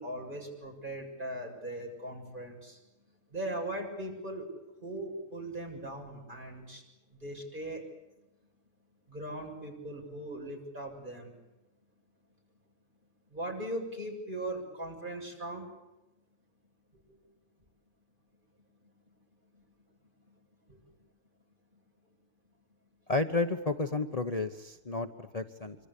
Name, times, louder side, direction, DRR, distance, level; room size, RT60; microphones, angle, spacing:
voice 1, 0.0-2.8 3.1-4.5 4.8-6.8 7.1-7.8 8.2-8.3 9.1-11.4 13.3-15.7 17.1-17.2 18.8-19.1 19.5-19.9 20.3-20.4 20.7-21.1 21.7-21.8, right 1 dB, 40° right, 1 dB, 7.5 m, -40 dB
voice 2, 23.1-25.8, left 3 dB, 30° left, 7 dB, 1.2 m, -31 dB
26.5 x 25.5 x 8.5 m, 1.0 s
omnidirectional pair, 1.4 m